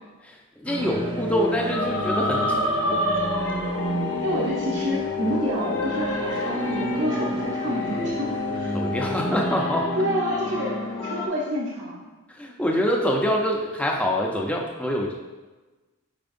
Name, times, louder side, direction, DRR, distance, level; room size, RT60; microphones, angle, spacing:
voice 1, 0.2-3.0 8.7-9.9 12.3-15.1, equal, 5° left, -1 dB, 0.6 m, -25 dB
sound 1, 0.7-11.3, left 2 dB, 70° left, 0.9 m, -28 dB
sound 2, 0.8-9.5, right 2 dB, 20° right, 0.3 m, -32 dB
voice 2, 4.2-8.8 10.0-10.7 11.0-12.1, equal, 60° right, -5 dB, 0.9 m, -28 dB
8.8 x 4.5 x 2.6 m, 1.2 s
head